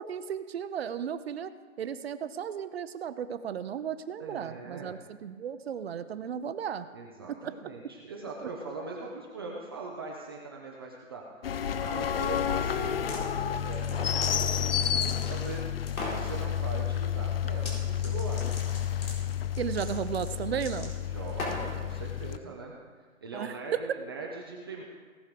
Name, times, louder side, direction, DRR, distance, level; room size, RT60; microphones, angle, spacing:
voice 1, 0.0-1.5 1.8-6.9 7.3-7.5 8.4-8.5 19.6-20.9 22.4-22.5 23.3-23.9, right 8 dB, 50° right, 12 dB, 0.8 m, -34 dB
voice 2, 4.2-4.9 6.9-11.2 11.8-15.7 16.1-18.5 21.1-24.8, right 3 dB, 20° right, -2 dB, 0.6 m, -41 dB
sound 1, 11.4-22.4, left 9 dB, 45° left, 0.5 m, -30 dB
sound 2, 12.9-13.2 13.7-15.5 15.9-16.3 17.5-17.8 18.0-21.8, left 2 dB, 90° left, 4.3 m, -39 dB
18.0 x 6.2 x 5.1 m, 1.5 s
hypercardioid pair, 160°, 41 cm